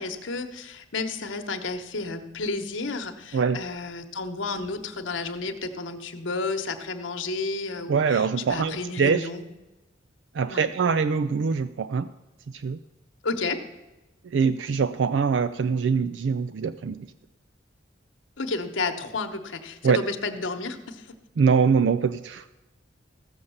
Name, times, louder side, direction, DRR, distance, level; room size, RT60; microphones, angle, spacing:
voice 1, 0.0-9.5 10.4-10.7 13.2-13.6 18.4-21.1, left 3 dB, 75° left, 6 dB, 1.1 m, -31 dB
voice 2, 7.9-9.3 10.3-12.1 12.5-12.8 14.2-17.0 19.8-20.0 21.4-22.5, right 5 dB, 65° right, 13 dB, 0.4 m, -23 dB
15.0 x 6.5 x 7.1 m, 1.1 s
head